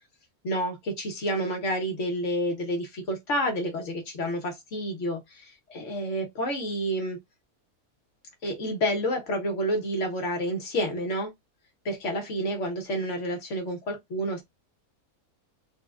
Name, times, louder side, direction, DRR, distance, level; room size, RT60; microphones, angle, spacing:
voice 1, 0.4-7.2 8.4-11.3 11.8-14.4, equal, 55° left, 1.2 m, -29 dB
3.4 x 2.2 x 2.3 m
omnidirectional pair, 1.6 m